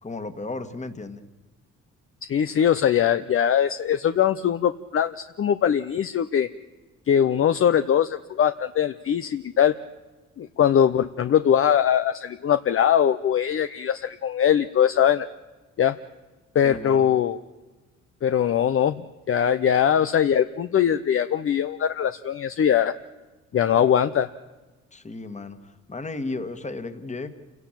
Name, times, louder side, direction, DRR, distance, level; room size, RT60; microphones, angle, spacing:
voice 1, 0.0-1.2 16.6-17.1 24.9-27.3, left 3 dB, 25° left, 10 dB, 1.8 m, -34 dB
voice 2, 2.3-6.5 7.1-9.7 10.4-15.3 15.8-16.0 16.5-17.4 18.2-22.9 23.5-24.3, left 9 dB, 45° left, 11 dB, 0.7 m, -21 dB
28.0 x 17.5 x 7.5 m, 1.2 s
cardioid pair, 90°, 30 cm